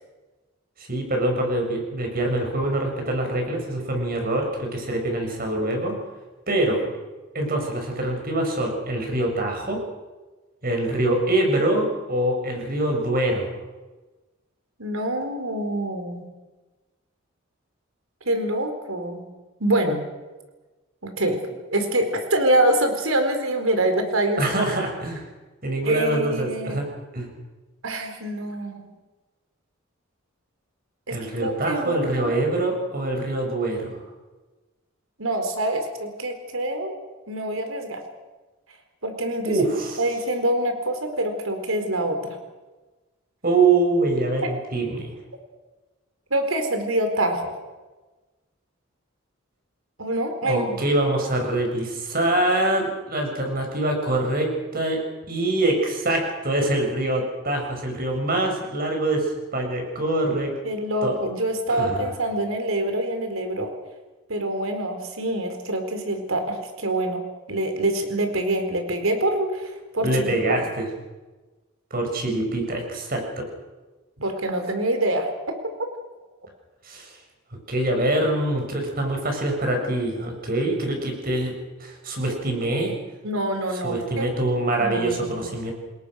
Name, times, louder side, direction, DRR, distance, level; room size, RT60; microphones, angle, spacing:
voice 1, 0.8-6.0 6.5-6.8 7.3-9.8 10.6-13.5 24.4-25.2 25.6-26.9 27.1-27.3 31.1-34.0 39.4-40.0 43.4-45.1 50.4-55.0 55.3-60.5 61.0-61.1 61.7-62.0 70.0-70.9 71.9-73.5 76.8-77.2 77.7-81.5 81.8-82.9 83.8-85.7, right 2 dB, 45° right, 2 dB, 7.1 m, -24 dB
voice 2, 14.8-16.3 18.3-19.2 19.6-20.0 21.0-21.4 21.7-24.4 25.8-26.8 27.8-28.9 31.1-32.4 35.2-36.9 37.3-38.0 39.0-39.6 40.0-42.4 44.4-44.5 46.3-47.6 50.0-50.8 60.6-63.7 64.3-67.2 67.5-70.6 74.2-75.3 83.2-84.3 84.8-85.4, right 1 dB, 80° right, 6 dB, 4.4 m, -25 dB
28.5 x 21.0 x 6.5 m, 1.2 s
head